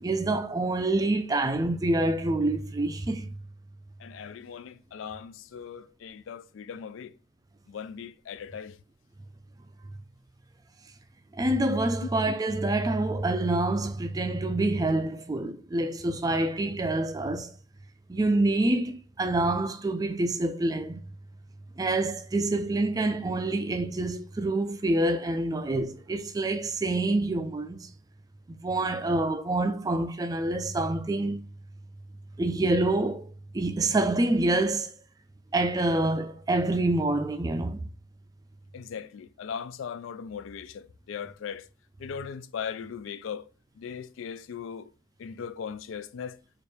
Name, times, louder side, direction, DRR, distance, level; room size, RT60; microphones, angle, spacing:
voice 1, 0.0-3.3 11.3-17.5 18.1-21.0 21.8-27.9 28.5-31.4 32.4-33.3 33.5-34.9 35.5-37.9, right 2 dB, 20° right, 0.3 m, -27 dB
voice 2, 4.0-7.1 7.7-8.8 12.0-12.1 38.7-41.7 42.0-43.5 43.8-44.9 45.2-46.4, left 7 dB, 85° left, 0.3 m, -38 dB
4.3 x 2.5 x 3.3 m
head